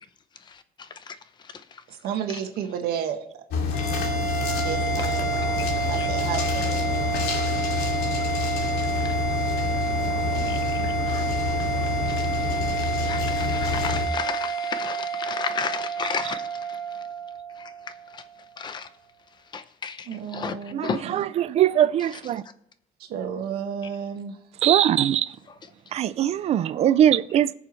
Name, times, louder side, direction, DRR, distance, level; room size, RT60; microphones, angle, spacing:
voice 1, 0.5-1.2 1.4-1.8 4.0-4.1 5.0-6.1 9.0-9.2 10.5-10.8 11.1-11.2 11.6-17.0 17.6-17.7 18.1-18.2 18.6-18.9 19.5-20.5 20.8-21.1 22.0-22.2 25.5-25.7, left 6 dB, 25° left, 0.7 m, -34 dB
voice 2, 1.9-3.2 4.6-7.3 9.8-10.9 20.1-21.3 23.0-24.4, right 8 dB, 70° right, 1.6 m, -33 dB
sound 1, 3.5-14.1, left 5 dB, 70° left, 2.4 m, -28 dB
sound 2, 3.7-18.3, right 6 dB, 55° left, 3.9 m, -29 dB
voice 3, 21.4-22.4 24.6-25.3 25.9-27.5, right 11 dB, 40° right, 0.4 m, -21 dB
20.5 x 7.0 x 3.2 m
cardioid pair, 180°, 17 cm